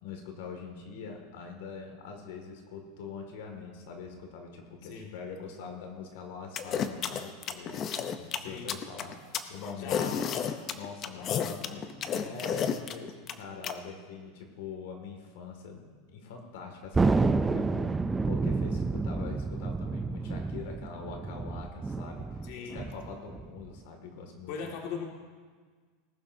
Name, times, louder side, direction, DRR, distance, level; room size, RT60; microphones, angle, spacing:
voice 1, 0.0-7.8 8.2-10.1 10.7-24.5, left 5 dB, 75° left, 3 dB, 2.1 m, -43 dB
sound 1, 6.6-13.7, left 8 dB, 30° left, 0.6 m, -31 dB
voice 2, 8.4-8.8 9.8-10.5 11.1-12.4 22.4-22.8 24.5-25.0, left 6 dB, 60° left, 0 dB, 1.9 m, -41 dB
Thunder, 16.9-23.8, right 3 dB, 10° right, 0.3 m, -29 dB
19.0 x 11.5 x 2.7 m, 1.6 s
supercardioid pair, 150°, 0 cm